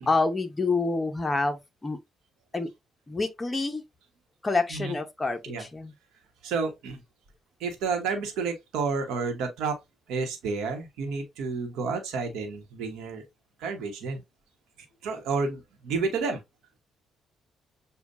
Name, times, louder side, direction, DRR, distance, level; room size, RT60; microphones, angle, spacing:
voice 1, 0.1-2.0 2.5-2.7 3.1-3.8 4.4-5.9, left 3 dB, 20° left, 0.9 m, -27 dB
voice 2, 6.4-7.0 7.6-9.8 10.1-13.2 13.6-14.2 15.0-16.4, right 4 dB, 90° right, 1.1 m, -30 dB
6.7 x 2.4 x 2.6 m
cardioid pair, 90°, 0 cm